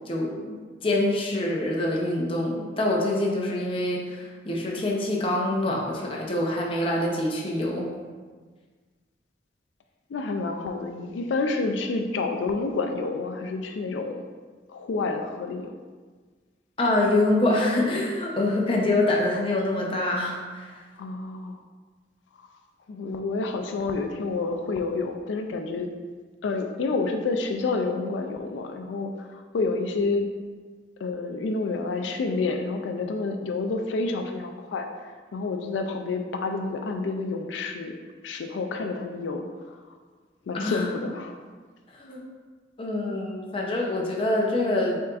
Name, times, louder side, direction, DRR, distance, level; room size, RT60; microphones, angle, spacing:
voice 1, 0.1-7.9 16.8-20.7 40.5-40.9 42.0-42.2 42.8-45.0, left 1 dB, 30° left, -2 dB, 0.6 m, -25 dB
voice 2, 10.1-14.2 14.7-15.7 21.0-21.6 22.9-25.9 26.4-30.3 31.0-37.9 38.2-39.8 40.5-41.4, left 3 dB, 90° left, 5 dB, 0.4 m, -29 dB
5.7 x 3.6 x 2.4 m, 1.5 s
head